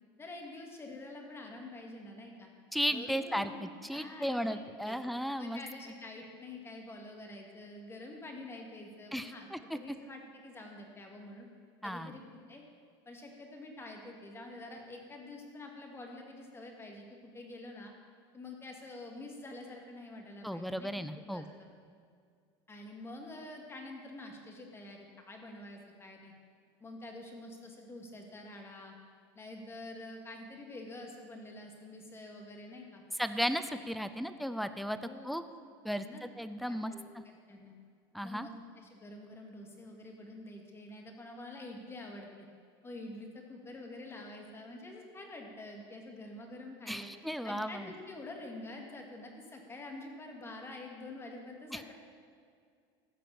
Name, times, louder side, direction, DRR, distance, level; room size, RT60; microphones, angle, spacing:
voice 1, 0.2-2.5 2.9-3.6 3.9-5.0 5.4-11.5 11.8-12.6 13.1-17.9 18.3-20.9 21.3-21.7 22.7-26.3 26.8-28.9 29.4-33.0 33.5-33.6 35.0-35.3 35.9-36.2 36.5-37.7 38.2-42.5 42.8-47.1 47.4-51.9, left 2 dB, 20° left, 2 dB, 2.1 m, -47 dB
voice 2, 2.7-5.6 9.1-9.6 11.8-12.2 20.4-21.5 33.2-35.0 35.2-35.4 35.8-37.2 38.1-38.5 46.9-47.9 51.7-51.8, equal, ahead, 11 dB, 0.5 m, -35 dB
15.0 x 5.9 x 7.1 m, 2.2 s
supercardioid pair, 120°, 13 cm